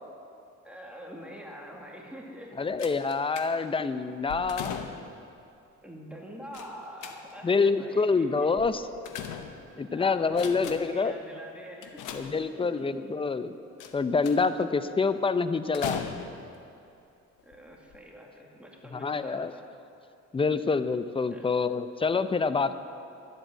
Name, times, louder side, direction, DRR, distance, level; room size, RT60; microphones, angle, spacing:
voice 1, 0.6-2.7 5.8-8.5 9.3-9.5 9.8-12.9 17.4-19.6 21.3-21.5, equal, 5° right, -2 dB, 2.1 m, -45 dB
voice 2, 2.6-4.9 7.4-8.8 9.8-11.1 12.1-13.5 13.9-16.0 18.9-19.5 20.3-22.7, left 4 dB, 20° left, 12 dB, 0.6 m, -26 dB
sound 1, 2.8-3.8 4.3-5.2 6.5-7.6 8.6-9.9 10.3-11.1 11.8-12.8 13.8-14.6 15.7-16.6 17.4-17.5 17.9-18.0, left 7 dB, 90° left, 1.0 m, -39 dB
12.0 x 8.2 x 8.9 m, 2.6 s
cardioid pair, 90°, 30 cm